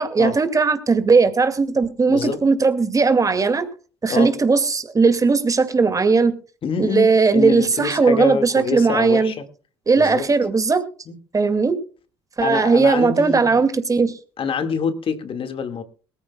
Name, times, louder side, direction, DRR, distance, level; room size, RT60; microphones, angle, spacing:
voice 1, 0.0-3.6 4.0-6.4 6.8-9.3 9.9-10.8 11.3-11.8 12.4-14.2, right 4 dB, 25° right, 10 dB, 2.1 m, -18 dB
voice 2, 2.1-2.4 4.1-4.3 6.6-9.4 9.9-10.3 11.1-11.2 12.4-13.6 14.4-15.8, left 5 dB, 45° left, 8 dB, 1.9 m, -25 dB
23.0 x 14.0 x 2.3 m, 0.38 s
hypercardioid pair, 55°, 13 cm